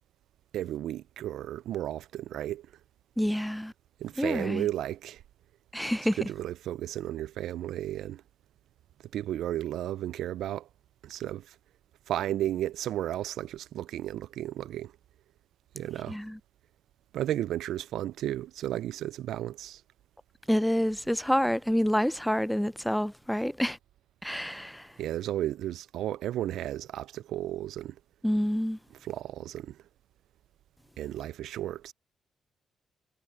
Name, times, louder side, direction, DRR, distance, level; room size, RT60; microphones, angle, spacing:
voice 1, 0.5-2.7 4.0-5.2 6.2-8.2 9.1-10.7 11.0-11.6 12.1-14.9 15.7-16.2 17.1-19.8 25.0-28.0 29.0-29.8 31.0-31.9, right 12 dB, 80° right, 0.4 m, -33 dB
voice 2, 3.2-3.7 4.2-4.6 5.7-6.2 16.1-16.4 20.5-23.8 24.2-24.8 28.2-28.8, equal, 5° left, 0.4 m, -27 dB
supercardioid pair, 60°, 0 cm